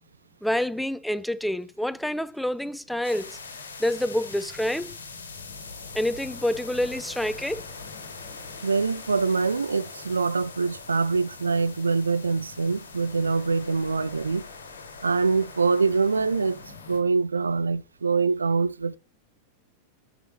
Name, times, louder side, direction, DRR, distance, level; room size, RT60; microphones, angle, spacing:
voice 1, 0.4-3.4 3.8-5.0 5.9-7.6, left 1 dB, ahead, 0.4 m, -27 dB
sound 1, 3.0-17.0, left 4 dB, 70° left, 1.3 m, -42 dB
voice 2, 8.6-14.5 15.0-16.6 16.9-19.0, right 4 dB, 75° right, 0.3 m, -24 dB
6.9 x 6.0 x 2.7 m
figure-of-eight pair, 90°, 0 cm